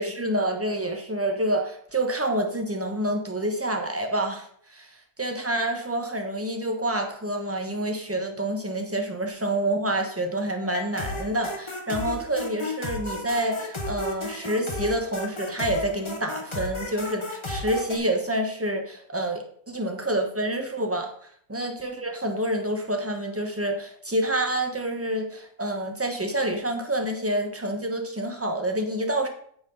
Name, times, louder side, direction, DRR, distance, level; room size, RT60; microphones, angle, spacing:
voice 1, 0.0-21.1 21.5-29.3, right 1 dB, 10° right, 4 dB, 1.1 m, -28 dB
sound 1, 10.6-18.0, left 1 dB, 20° left, 1.2 m, -33 dB
9.3 x 7.7 x 3.9 m, 0.63 s
omnidirectional pair, 1.5 m